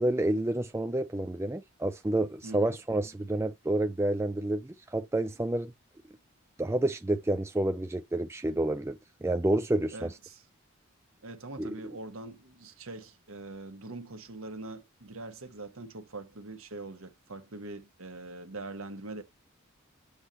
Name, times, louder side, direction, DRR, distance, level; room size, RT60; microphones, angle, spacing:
voice 1, 0.0-5.7 6.6-10.2 11.6-11.7, right 1 dB, 10° right, 0.3 m, -29 dB
voice 2, 2.4-2.8 9.9-10.4 11.2-19.2, right 2 dB, 80° right, 1.2 m, -43 dB
8.0 x 2.9 x 5.2 m
head